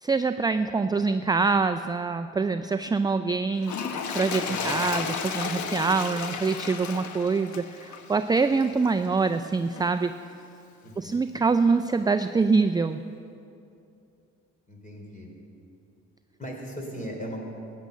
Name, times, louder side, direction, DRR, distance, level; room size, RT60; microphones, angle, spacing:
voice 1, 0.0-3.7 4.1-10.1 11.0-13.0, right 4 dB, 15° right, 9 dB, 0.4 m, -25 dB
Toilet flush, 3.6-9.1 9.7-9.9, left 6 dB, 70° left, 1.1 m, -33 dB
voice 2, 4.4-4.8 10.8-11.2 14.7-15.3 16.4-17.4, equal, 25° left, 1 dB, 3.4 m, -38 dB
14.5 x 9.4 x 6.6 m, 2.6 s
cardioid pair, 90°, 30 cm